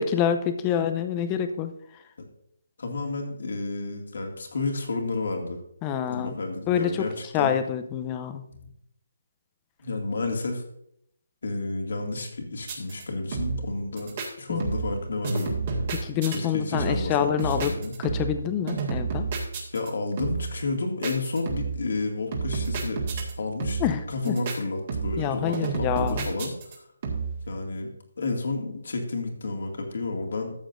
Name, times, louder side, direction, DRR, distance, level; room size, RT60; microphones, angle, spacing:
voice 1, 0.0-1.7 5.8-6.3 6.7-7.1 7.3-8.4 14.5-14.7 15.9-17.7 18.0-19.3 23.8-24.4 25.2-26.3, left 9 dB, 20° left, 9 dB, 0.6 m, -27 dB
voice 2, 2.8-5.6 6.1-7.5 8.6-8.7 9.8-10.6 11.4-15.6 16.3-17.9 19.7-23.0 23.4-23.8 24.1-26.5 27.5-27.9 28.2-30.5, left 3 dB, 60° left, 2 dB, 2.1 m, -31 dB
sound 1, 12.6-13.0 13.3-13.7 14.0-14.3 14.6-15.0 15.2-16.4 16.7-17.1 17.4-18.4 18.7-19.9 20.2-20.6 21.0-21.8 22.3-23.3 23.6-24.0 24.2-24.6 24.9-25.3 25.5-26.7 27.0-27.4, right 4 dB, 35° right, 1.9 m, -30 dB
13.5 x 7.5 x 2.6 m, 0.74 s
figure-of-eight pair, 160°, 0 cm